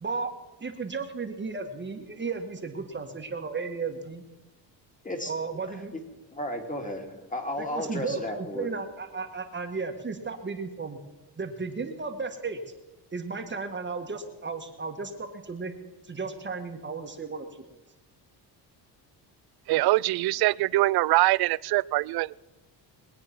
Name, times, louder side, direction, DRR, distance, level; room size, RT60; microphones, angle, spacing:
voice 1, 0.0-4.2 5.3-5.9 7.6-11.0 11.4-12.6 13.1-15.7 16.0-17.6, right 4 dB, 25° right, 5 dB, 1.6 m, -34 dB
voice 2, 6.3-8.7, left 1 dB, 20° left, 4 dB, 2.7 m, -33 dB
voice 3, 19.7-22.4, right 18 dB, 65° right, 22 dB, 0.5 m, -23 dB
22.0 x 8.7 x 6.0 m, 1.1 s
cardioid pair, 110°, 42 cm